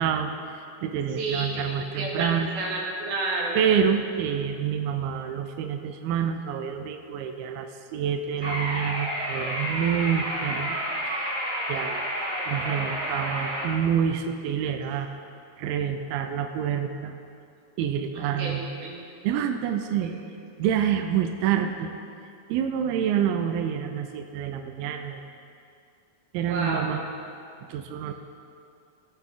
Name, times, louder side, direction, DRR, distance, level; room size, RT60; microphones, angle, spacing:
voice 1, 0.0-2.5 3.5-10.8 11.1-11.4 11.7-15.1 15.6-17.1 17.8-18.7 19.2-20.1 20.6-21.9 22.5-25.2 26.3-27.0 27.7-28.1, right 8 dB, 85° right, 6 dB, 2.1 m, -27 dB
voice 2, 1.2-3.6 18.1-19.0 20.0-20.1 26.5-27.0, right 2 dB, 70° right, -2 dB, 3.1 m, -31 dB
sound 1, 8.4-13.6, equal, 25° right, 1.1 m, -30 dB
15.5 x 6.1 x 3.7 m, 2.6 s
omnidirectional pair, 4.7 m